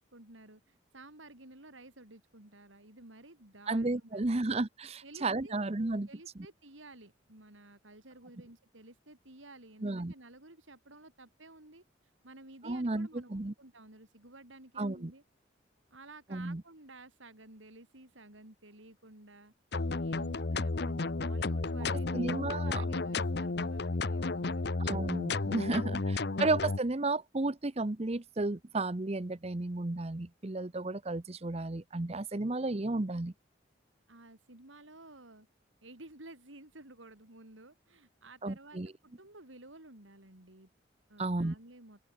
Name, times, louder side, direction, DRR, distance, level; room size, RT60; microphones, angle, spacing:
voice 1, 0.0-4.4 5.0-5.6 6.1-11.8 12.2-15.2 15.9-19.5 20.0-24.7 34.1-35.5 35.8-40.7 41.1-42.0, right 2 dB, 85° right, 5.2 m, -53 dB
voice 2, 3.7-6.1 9.8-10.1 12.6-13.5 14.8-15.1 16.3-16.6 22.1-22.8 24.8-33.3 38.4-38.9 41.2-41.5, right 2 dB, 35° right, 0.8 m, -33 dB
sound 1, 19.7-26.8, left 3 dB, 55° left, 0.8 m, -32 dB
open air
head